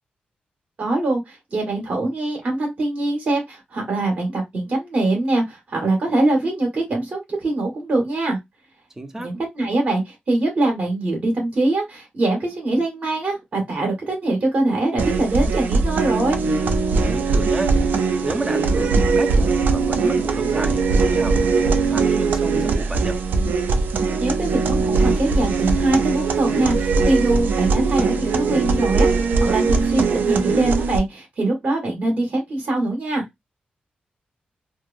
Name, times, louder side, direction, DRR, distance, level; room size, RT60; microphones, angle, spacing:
voice 1, 0.8-8.4 9.2-16.4 24.2-33.2, right 2 dB, 50° right, 1.4 m, -23 dB
voice 2, 9.0-9.3 17.0-17.8 18.2-23.2, right 1 dB, 15° right, 0.4 m, -30 dB
sound 1, 15.0-31.0, right 4 dB, 80° right, 0.4 m, -20 dB
3.2 x 2.0 x 2.5 m
wide cardioid pair, 165°, 3 cm